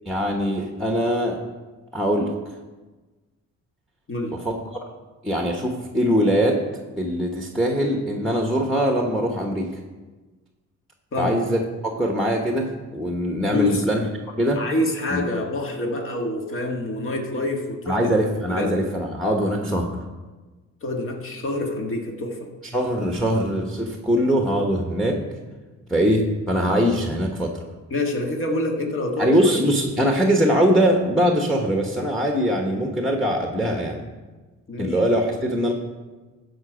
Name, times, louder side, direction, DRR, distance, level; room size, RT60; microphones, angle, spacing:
voice 1, 0.1-1.4 1.9-2.3 4.4-4.6 5.2-6.6 7.0-9.7 11.2-14.0 14.4-14.6 15.1-15.2 17.9-19.9 22.7-25.2 25.9-27.5 29.2-34.0 34.8-35.7, equal, ahead, 2 dB, 1.2 m, -22 dB
voice 2, 13.5-13.8 14.6-18.1 18.5-18.8 20.8-22.5 27.9-29.5 29.8-30.1 34.7-35.0, left 2 dB, 45° left, 2 dB, 1.8 m, -27 dB
14.5 x 5.1 x 5.0 m, 1.2 s
cardioid pair, 90°, 30 cm